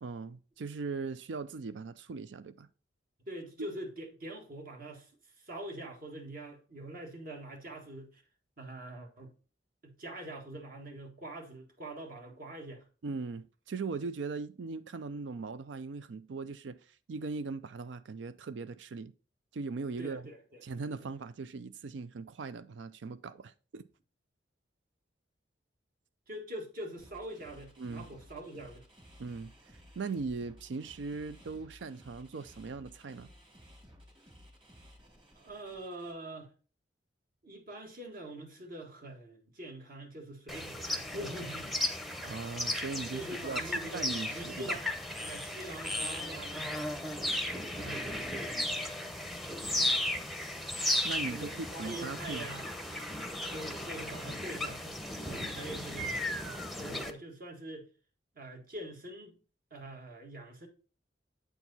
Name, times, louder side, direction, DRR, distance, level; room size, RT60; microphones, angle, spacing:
voice 1, 0.0-2.7 3.6-3.7 13.0-16.8 17.1-19.1 19.5-20.2 20.6-23.8 27.8-28.1 29.2-33.3 42.2-43.6 43.9-44.8 51.0-51.5 51.8-52.5, right 4 dB, 90° right, 0.4 m, -39 dB
voice 2, 3.3-5.1 5.4-8.2 8.6-9.3 9.8-12.9 20.0-20.6 21.0-21.1 26.3-28.8 35.3-36.5 37.4-41.7 43.1-44.8 45.2-46.7 47.7-48.8 51.3-52.7 53.5-57.9 58.3-59.4 59.7-60.7, right 1 dB, 55° right, 1.7 m, -44 dB
sound 1, 27.0-36.1, equal, 30° right, 2.1 m, -56 dB
sound 2, 40.5-57.1, left 1 dB, ahead, 0.7 m, -35 dB
8.0 x 4.6 x 4.1 m
head